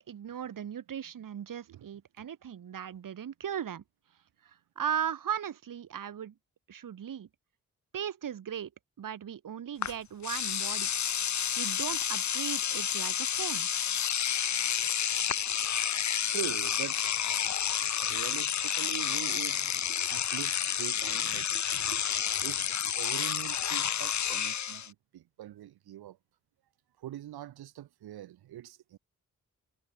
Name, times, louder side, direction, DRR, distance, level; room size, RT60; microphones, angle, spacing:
voice 1, 0.0-3.8 4.4-6.3 6.7-7.3 7.9-8.7 9.0-10.9 11.6-13.7, right 9 dB, 55° right, 1.3 m, -37 dB
Engine / Domestic sounds home sounds, 9.8-9.9 10.2-24.9, left 9 dB, 50° left, 0.9 m, -30 dB
voice 2, 16.3-17.1 18.0-19.6 19.9-26.2 27.0-29.0, right 13 dB, 75° right, 1.2 m, -43 dB
supercardioid pair, 40°, 38 cm